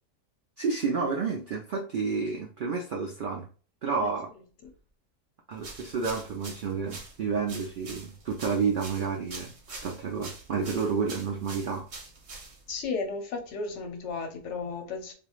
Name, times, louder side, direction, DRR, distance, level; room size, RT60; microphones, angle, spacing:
voice 1, 0.6-3.5 3.8-4.3 5.5-11.8, right 5 dB, 75° right, 0 dB, 0.4 m, -30 dB
sound 1, 5.6-12.8, right 3 dB, 60° right, 1.0 m, -45 dB
voice 2, 12.7-15.1, left 4 dB, 65° left, 4 dB, 1.0 m, -34 dB
3.0 x 2.5 x 2.3 m, 0.38 s
omnidirectional pair, 1.4 m